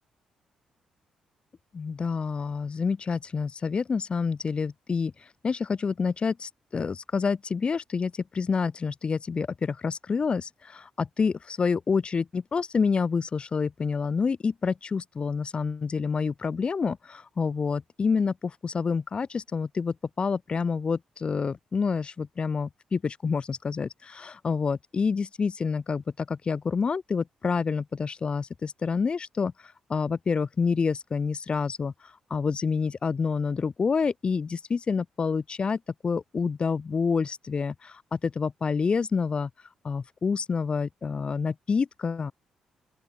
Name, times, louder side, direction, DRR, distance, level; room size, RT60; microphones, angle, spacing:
voice 1, 1.7-5.1 5.4-29.5 29.9-31.9 32.3-39.5 39.8-42.3, left 5 dB, 45° left, 5.2 m, -28 dB
open air
supercardioid pair, 55°, 2 cm